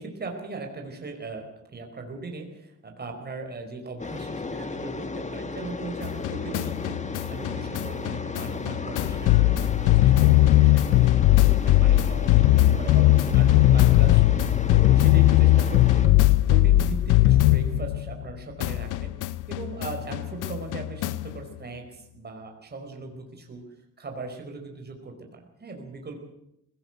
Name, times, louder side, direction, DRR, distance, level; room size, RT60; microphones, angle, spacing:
voice 1, 0.0-23.6 24.0-26.2, right 3 dB, 35° right, 3 dB, 4.8 m, -39 dB
sound 1, 4.0-16.1, left 3 dB, 25° left, 1.9 m, -34 dB
sound 2, 6.0-18.3 18.6-21.4, left 15 dB, 85° left, 0.8 m, -20 dB
21.0 x 17.5 x 8.0 m, 0.79 s
cardioid pair, 90°, 30 cm